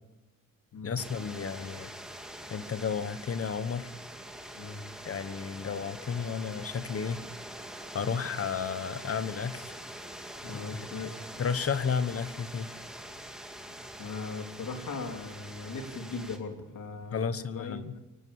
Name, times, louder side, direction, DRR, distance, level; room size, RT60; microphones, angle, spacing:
voice 1, 0.8-1.9 2.5-3.9 5.0-7.2 7.9-9.7 10.5-10.9 11.4-12.7 17.1-17.9, left 6 dB, 40° left, 12 dB, 1.2 m, -32 dB
sound 1, 1.0-16.4, right 1 dB, ahead, 2.4 m, -44 dB
voice 2, 10.4-11.3 14.0-17.8, left 4 dB, 60° left, 4 dB, 3.4 m, -39 dB
24.0 x 18.0 x 8.7 m, 1.0 s
wide cardioid pair, 170°, 35 cm